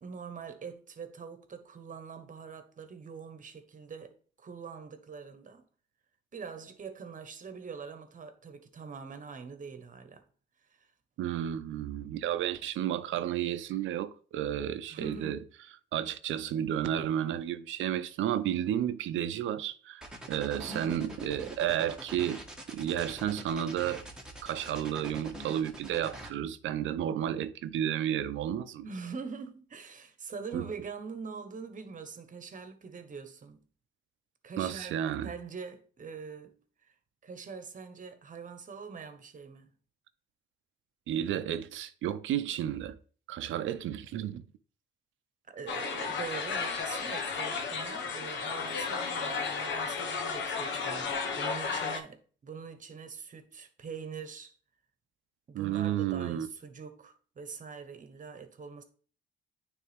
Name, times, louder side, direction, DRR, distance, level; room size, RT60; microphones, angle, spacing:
voice 1, 0.0-5.6 6.3-10.3 10.7-10.9 14.9-15.4 20.7-21.1 28.8-33.6 34.4-35.0 35.2-36.9 37.2-39.7 45.5-54.6 55.5-58.8, right 5 dB, 40° right, 1.2 m, -44 dB
voice 2, 11.2-15.4 15.9-20.0 20.3-22.4 22.7-24.0 24.4-28.8 30.5-30.7 34.6-35.3 41.1-43.0 43.3-44.4 55.5-56.5, right 10 dB, 80° right, 0.6 m, -32 dB
sound 1, 20.0-26.3, right 1 dB, 5° right, 1.4 m, -45 dB
sound 2, 45.7-52.0, left 5 dB, 70° left, 1.1 m, -33 dB
9.3 x 3.4 x 3.5 m
cardioid pair, 90°, 20 cm